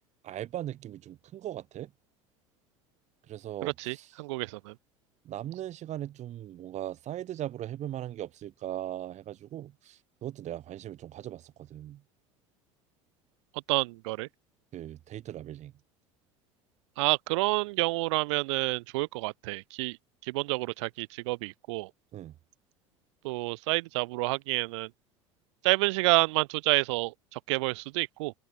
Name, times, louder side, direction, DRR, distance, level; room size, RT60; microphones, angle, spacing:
voice 1, 0.2-1.9 3.3-4.1 5.2-12.0 14.7-15.7 22.1-22.3, right 12 dB, 45° right, 3.9 m, -39 dB
voice 2, 3.6-4.7 13.7-14.3 17.0-20.0 20.3-21.9 23.2-24.9 25.6-28.3, right 23 dB, 65° right, 1.2 m, -29 dB
figure-of-eight pair, 70°, 16 cm